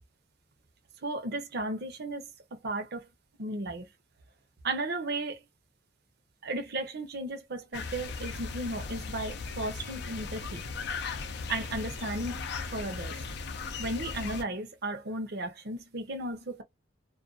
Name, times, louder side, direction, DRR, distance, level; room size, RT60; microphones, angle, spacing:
voice 1, 1.0-2.3 2.6-3.1 3.4-3.9 4.6-5.4 6.4-10.6 11.5-12.4 12.7-13.1 13.8-16.6, right 2 dB, 60° right, 0.7 m, -35 dB
Fraser Range Salt Lake Dawn, 7.7-14.4, left 4 dB, 60° left, 0.4 m, -37 dB
2.4 x 2.3 x 2.3 m
head